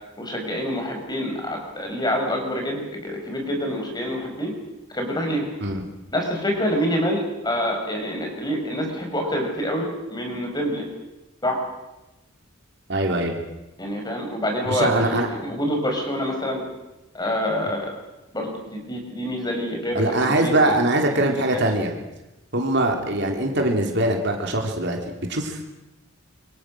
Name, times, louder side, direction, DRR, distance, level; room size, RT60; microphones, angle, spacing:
voice 1, 0.2-4.5 4.9-5.5 6.1-10.8 11.4-11.6 13.8-16.6 17.1-17.9 18.3-20.8 21.1-21.6, equal, 20° left, 2 dB, 5.5 m, -26 dB
voice 2, 12.9-13.4 14.7-15.3 19.9-21.9 22.5-25.6, right 1 dB, 55° right, 2 dB, 3.7 m, -22 dB
26.5 x 23.5 x 6.5 m, 1.0 s
head